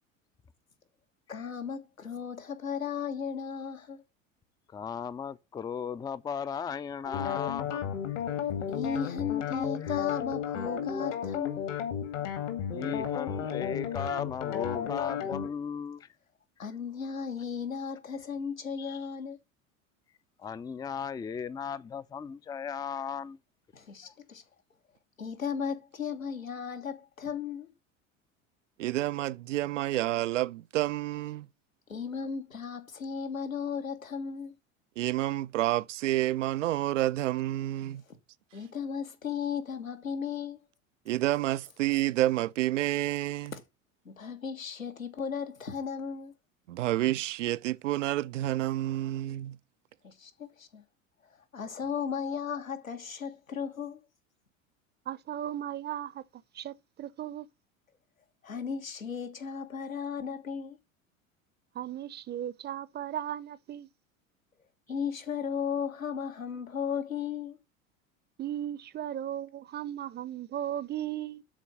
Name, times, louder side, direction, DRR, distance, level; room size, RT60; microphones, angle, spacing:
voice 1, 1.3-4.0 8.7-11.7 16.6-19.4 23.7-24.4 25.2-27.7 31.9-34.6 38.1-38.2 38.5-40.6 43.5-43.6 44.1-46.3 50.0-50.8 51.3-54.0 58.4-60.8 64.9-67.6, left 6 dB, 80° left, 1.7 m, -35 dB
voice 2, 4.7-7.8 12.7-16.1 18.8-19.0 20.4-23.4 24.0-24.1, left 7 dB, 10° left, 0.4 m, -36 dB
sound 1, 7.0-15.5, left 8 dB, 60° left, 2.2 m, -33 dB
voice 3, 28.8-31.5 35.0-38.0 41.1-43.5 46.7-49.6, right 15 dB, 65° right, 0.5 m, -29 dB
voice 4, 55.1-57.5 61.7-63.9 68.4-71.4, right 11 dB, 25° right, 0.7 m, -36 dB
12.5 x 4.5 x 6.5 m
figure-of-eight pair, 75°, 40 cm